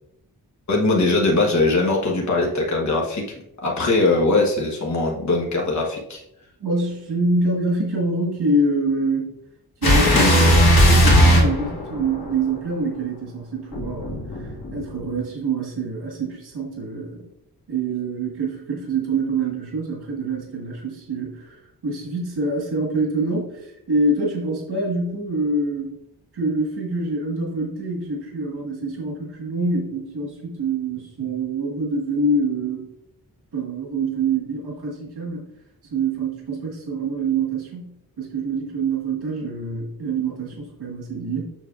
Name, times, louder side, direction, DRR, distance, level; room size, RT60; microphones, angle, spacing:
voice 1, 0.7-3.2 3.6-6.2, left 2 dB, 45° left, -1 dB, 1.1 m, -21 dB
voice 2, 6.6-9.4 9.8-17.3 17.7-25.9 26.3-32.9 33.5-35.5 35.9-41.5, right 2 dB, 90° right, -3 dB, 1.7 m, -26 dB
sound 1, 9.8-12.3 13.7-15.0, equal, 65° left, 1.8 m, -16 dB
7.2 x 6.3 x 2.4 m, 0.80 s
wide cardioid pair, 115°, 38 cm